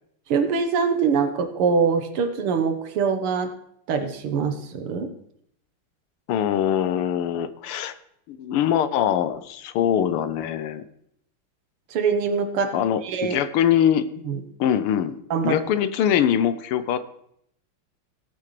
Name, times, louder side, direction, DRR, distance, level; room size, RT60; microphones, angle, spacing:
voice 1, 0.3-3.5 3.9-5.1 11.9-12.7 13.0-13.4 14.3-14.4 15.3-15.6, right 5 dB, 80° right, 7 dB, 2.1 m, -23 dB
voice 2, 6.3-7.9 8.3-10.8 12.7-14.0 14.6-15.2 15.4-17.0, left 9 dB, 85° left, 12 dB, 1.7 m, -23 dB
18.0 x 8.7 x 3.3 m, 0.72 s
omnidirectional pair, 2.4 m